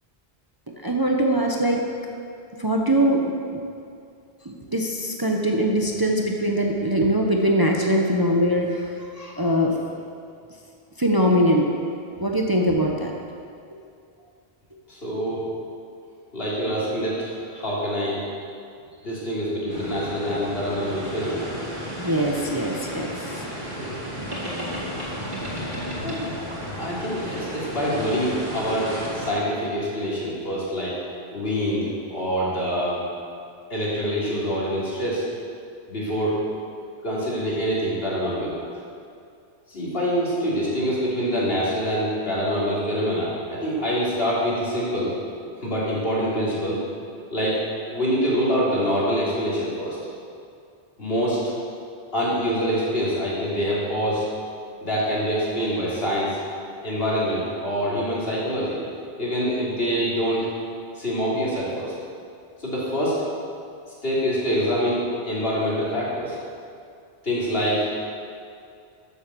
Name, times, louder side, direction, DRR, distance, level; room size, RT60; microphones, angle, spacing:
voice 1, 0.8-1.8 2.6-3.6 4.4-9.8 11.0-11.7 12.2-13.1 22.0-23.4, equal, 20° right, 0 dB, 0.9 m, -22 dB
voice 2, 14.9-15.4 16.3-18.2 19.0-21.5 23.8-24.0 26.0-26.2 26.8-31.0 31.3-33.0 33.7-35.2 35.9-36.4 37.0-38.6 39.7-45.1 45.6-46.8 47.3-47.6 47.9-50.0 51.0-51.4 52.1-54.3 54.8-56.4 56.8-58.8 59.2-60.5 61.0-61.9 62.6-63.2 64.0-66.4 67.2-67.9, equal, 65° left, -7 dB, 3.7 m, -25 dB
sound 1, 19.7-29.3, equal, 45° right, 2.8 m, -33 dB
13.0 x 7.4 x 6.9 m, 2.4 s
omnidirectional pair, 1.1 m